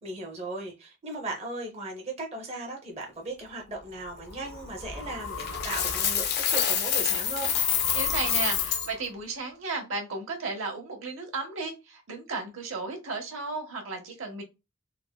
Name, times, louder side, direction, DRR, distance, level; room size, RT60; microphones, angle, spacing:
voice 1, 0.0-7.5, right 2 dB, 30° right, 0.6 m, -37 dB
sound 1, 3.4-9.2, left 4 dB, 85° left, 0.8 m, -41 dB
Coin (dropping), 5.4-8.9, left 8 dB, 50° left, 0.4 m, -27 dB
voice 2, 7.9-14.4, right 3 dB, 85° right, 0.8 m, -34 dB
3.3 x 2.0 x 2.2 m
head